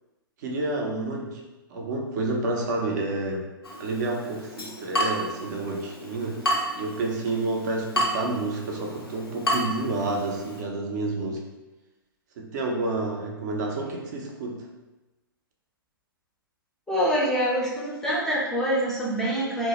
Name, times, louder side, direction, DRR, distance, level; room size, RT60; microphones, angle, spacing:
voice 1, 0.4-1.4 1.7-3.4 3.8-6.4 6.8-11.4 12.4-14.6, right 2 dB, 50° right, 1 dB, 0.5 m, -29 dB
Water tap faucet / Drip, 3.6-10.6, equal, 90° left, 0.4 m, -31 dB
voice 2, 16.9-19.7, equal, 5° left, -6 dB, 0.5 m, -25 dB
2.1 x 2.0 x 2.8 m, 1.1 s
hypercardioid pair, 120°, 12 cm